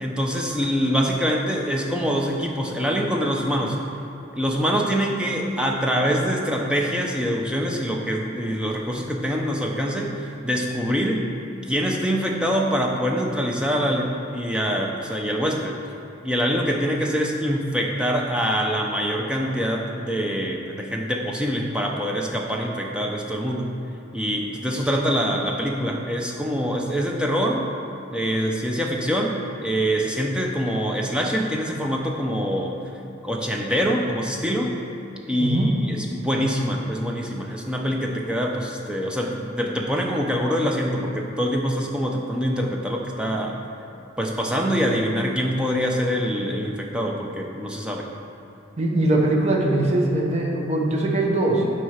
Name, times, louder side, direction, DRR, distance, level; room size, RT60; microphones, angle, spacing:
voice 1, 0.0-3.8 4.4-11.2 11.7-15.8 16.2-23.7 24.1-27.7 28.1-32.8 33.2-34.8 35.3-43.6 44.2-48.1, equal, 5° right, 0 dB, 0.6 m, -24 dB
voice 2, 35.4-35.7 48.8-51.7, right 1 dB, 30° right, -1 dB, 0.9 m, -21 dB
7.9 x 4.5 x 5.8 m, 3.0 s
head